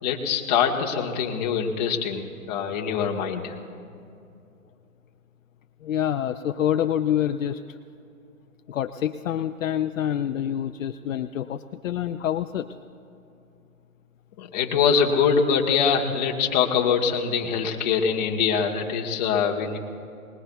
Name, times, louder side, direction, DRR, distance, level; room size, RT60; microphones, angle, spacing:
voice 1, 0.0-3.6 14.4-19.8, left 6 dB, 30° left, 1 dB, 1.3 m, -23 dB
voice 2, 5.8-7.6 8.7-12.7, left 10 dB, 65° left, 7 dB, 0.6 m, -26 dB
24.5 x 20.0 x 2.3 m, 2.6 s
hypercardioid pair, 150°, 43 cm